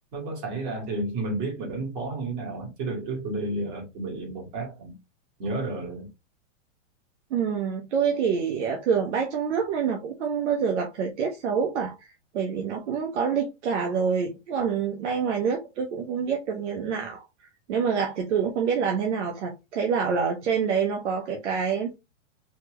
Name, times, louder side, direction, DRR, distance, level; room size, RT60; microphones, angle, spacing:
voice 1, 0.1-5.0 5.4-6.1, right 2 dB, 40° right, 2.2 m, -31 dB
voice 2, 7.3-17.2 17.7-22.0, right 6 dB, 65° right, 1.0 m, -26 dB
4.4 x 2.9 x 3.1 m
supercardioid pair, 160°, 38 cm